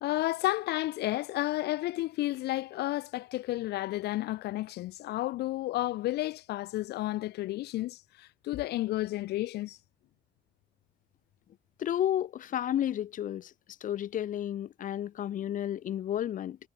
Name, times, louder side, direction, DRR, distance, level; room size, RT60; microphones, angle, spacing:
voice 1, 0.0-9.8, left 16 dB, 75° left, 0.9 m, -32 dB
voice 2, 11.8-13.5 13.8-16.6, left 11 dB, 50° left, 1.0 m, -32 dB
cardioid pair, 110°, 17 cm